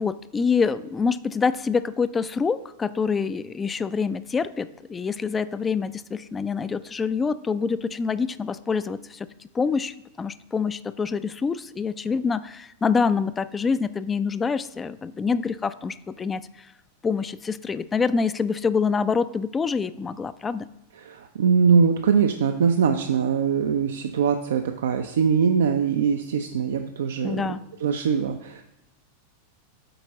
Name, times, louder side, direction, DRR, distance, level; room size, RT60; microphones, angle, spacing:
voice 1, 0.0-16.7 17.0-20.7 27.2-27.6, left 5 dB, 15° left, 15 dB, 0.3 m, -26 dB
voice 2, 21.0-27.4 27.8-28.6, right 6 dB, 65° right, 6 dB, 0.4 m, -22 dB
7.7 x 4.5 x 4.0 m, 0.88 s
figure-of-eight pair, 90°, 0 cm